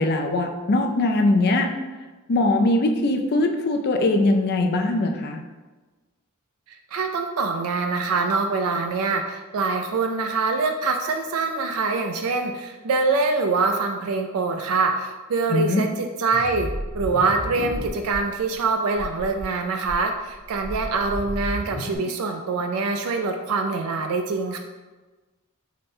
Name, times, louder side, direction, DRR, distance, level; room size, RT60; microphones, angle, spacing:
voice 1, 0.0-1.7 2.3-5.4 15.5-15.8, left 2 dB, 45° left, 5 dB, 0.4 m, -21 dB
voice 2, 6.9-16.7 16.9-24.6, right 4 dB, 70° right, 5 dB, 0.3 m, -24 dB
sound 1, 16.3-18.2 18.5-18.6 18.9-19.4 19.8-21.9, equal, 55° right, 1.3 m, -33 dB
5.0 x 2.1 x 4.3 m, 1.2 s
head